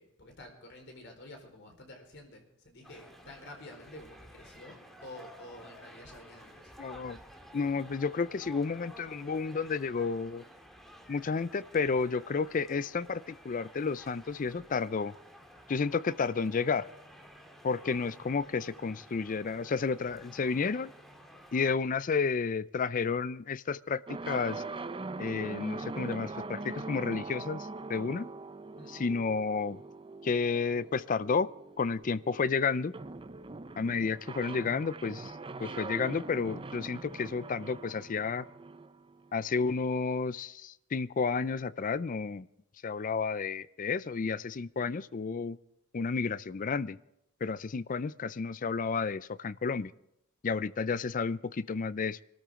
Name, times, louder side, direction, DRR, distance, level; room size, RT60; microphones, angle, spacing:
voice 1, 0.0-6.7 28.8-28.9, left 1 dB, 60° left, 3 dB, 4.4 m, -50 dB
sound 1, 2.8-21.7, equal, ahead, 1.9 m, -53 dB
voice 2, 6.8-7.2 7.5-10.4 11.1-15.1 15.7-16.9 17.6-20.9 21.5-24.6 25.2-28.3 28.9-29.8 30.2-31.5 31.8-32.9 33.8-35.3 35.6-38.5 39.3-42.5 42.8-45.6 45.9-47.0 47.4-49.9 50.4-52.2, left 5 dB, 40° left, 18 dB, 0.4 m, -31 dB
sound 2, 24.1-39.8, right 3 dB, 25° right, 0.6 m, -42 dB
24.5 x 13.5 x 3.7 m, 0.82 s
head